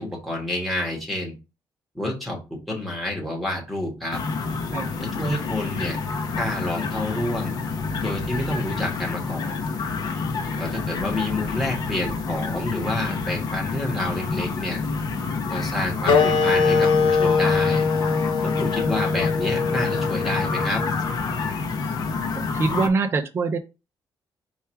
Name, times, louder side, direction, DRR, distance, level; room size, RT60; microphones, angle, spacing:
voice 1, 0.0-1.3 1.9-4.2 5.0-6.0 6.4-7.6 8.0-9.5 10.6-14.8 15.5-17.9 18.4-20.8, left 1 dB, ahead, 1.2 m, -29 dB
sound 1, 4.1-22.9, left 4 dB, 50° left, 0.6 m, -28 dB
Wind instrument woodwind instrument, 16.1-21.2, left 5 dB, 85° left, 0.9 m, -22 dB
voice 2, 22.3-23.6, right 4 dB, 30° right, 0.4 m, -24 dB
4.6 x 2.3 x 4.3 m
cardioid pair, 170°, 8 cm